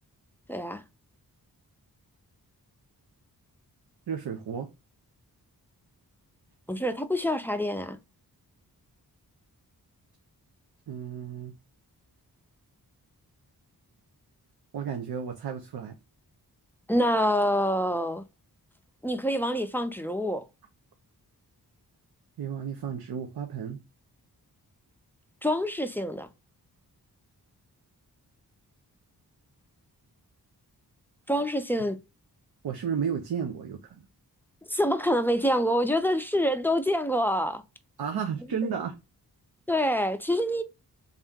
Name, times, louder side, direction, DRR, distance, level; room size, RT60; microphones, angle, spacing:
voice 1, 0.5-0.8 6.7-8.0 16.9-18.2 19.0-20.4 25.4-26.3 31.3-32.0 34.7-37.6 39.7-40.6, equal, 5° left, 0.3 m, -26 dB
voice 2, 4.1-4.7 10.9-11.5 14.7-16.0 22.4-23.8 32.6-34.0 38.0-39.0, right 7 dB, 75° right, 0.7 m, -33 dB
3.6 x 2.8 x 3.5 m
wide cardioid pair, 165°, 38 cm